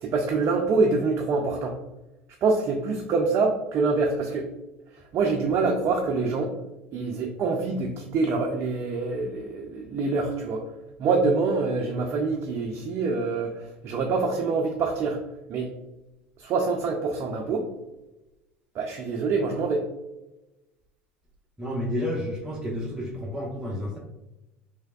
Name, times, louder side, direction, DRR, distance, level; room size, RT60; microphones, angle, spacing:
voice 1, 0.0-1.8 2.4-4.5 5.1-6.5 6.9-10.7 11.0-15.2 15.5-15.7 16.4-17.7 18.8-19.9, right 4 dB, 45° right, 2 dB, 0.5 m, -25 dB
voice 2, 21.6-24.0, left 1 dB, 10° right, -5 dB, 0.7 m, -30 dB
3.3 x 3.3 x 2.3 m, 1.0 s
hypercardioid pair, 70°, 7 cm